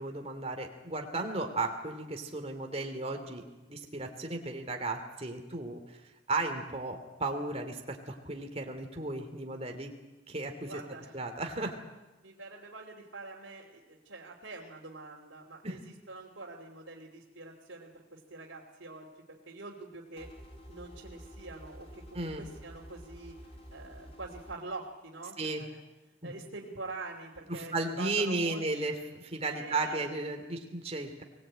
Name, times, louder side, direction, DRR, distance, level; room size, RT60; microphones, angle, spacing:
voice 1, 0.0-3.4 3.7-5.8 6.3-9.9 10.3-10.8 11.1-11.8 15.6-15.8 22.1-22.4 25.4-25.7 26.2-26.3 27.5-31.2, right 2 dB, 30° right, 4 dB, 2.8 m, -34 dB
voice 2, 10.6-11.2 12.2-20.3 20.7-25.8 26.2-28.6 29.5-30.1, right 3 dB, 80° right, -5 dB, 3.1 m, -45 dB
sound 1, 20.2-24.6, equal, 30° left, 3.0 m, -49 dB
23.5 x 18.0 x 8.9 m, 1.1 s
head